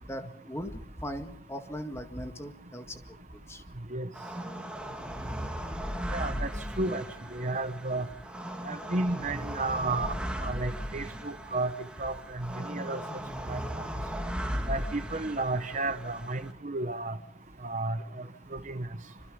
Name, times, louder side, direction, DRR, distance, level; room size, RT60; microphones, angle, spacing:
voice 1, 0.0-3.6 7.9-8.1 14.5-14.8, equal, 15° left, 6 dB, 2.0 m, -40 dB
sound 1, 4.1-16.5, equal, 5° right, 2.7 m, -37 dB
voice 2, 6.1-6.5 6.8-7.0 7.3-8.1 8.6-10.1 10.4-11.7 12.0-13.0 13.5-13.9 14.7-17.2 17.6-18.0 18.5-18.9, right 2 dB, 40° right, 10 dB, 1.1 m, -32 dB
27.5 x 26.0 x 5.2 m, 0.62 s
head